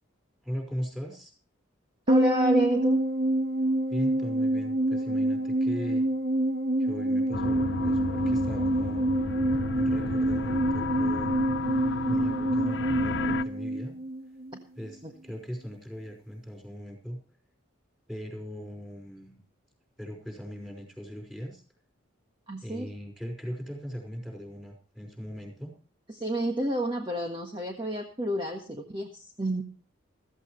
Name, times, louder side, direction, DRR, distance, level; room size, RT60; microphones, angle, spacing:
voice 1, 0.4-1.3 3.9-6.0 6.8-9.0 9.7-11.3 12.1-13.9 14.8-17.2 18.1-19.4 20.0-21.6 22.6-25.7, equal, 5° right, 2 dB, 5.1 m, -39 dB
voice 2, 2.1-3.0 15.0-15.1 22.5-22.9 26.1-29.1 29.4-29.6, right 1 dB, 25° right, 2 dB, 1.5 m, -29 dB
sound 1, 2.1-14.6 14.9-15.0, right 1 dB, 50° right, 1.2 m, -27 dB
sound 2, 7.3-13.4, left 4 dB, 60° left, 0.7 m, -34 dB
16.0 x 14.5 x 3.2 m, 0.36 s
head